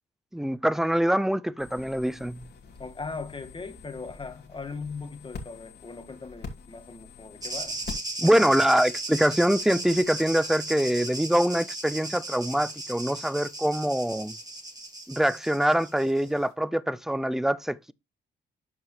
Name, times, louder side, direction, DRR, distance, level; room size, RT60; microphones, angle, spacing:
voice 1, 0.3-2.4 8.2-14.3 15.1-17.9, right 1 dB, ahead, 0.4 m, -24 dB
sound 1, 1.6-8.2 8.5-16.5, left 4 dB, 55° left, 2.3 m, -48 dB
voice 2, 2.8-7.8, left 4 dB, 25° left, 1.7 m, -39 dB
sound 2, 7.4-16.3, right 2 dB, 20° right, 2.2 m, -36 dB
12.0 x 4.7 x 3.1 m
cardioid pair, 90°, 20 cm